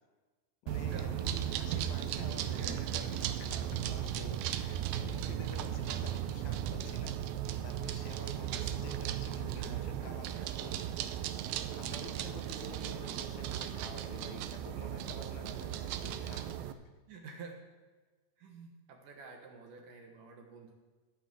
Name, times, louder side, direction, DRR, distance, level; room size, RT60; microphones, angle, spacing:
voice 1, 0.6-7.2 7.6-11.2 11.7-16.5, left 6 dB, 75° left, 6 dB, 2.6 m, -50 dB
sound 1, 0.7-16.7, right 11 dB, 80° right, 2.4 m, -36 dB
voice 2, 1.6-1.9 2.5-3.1 4.4-4.5 5.3-5.5 9.6-9.8 14.9-15.0 17.1-17.6 18.4-20.7, right 4 dB, 65° right, 2 dB, 2.5 m, -50 dB
13.5 x 5.8 x 7.5 m, 1.3 s
omnidirectional pair, 4.4 m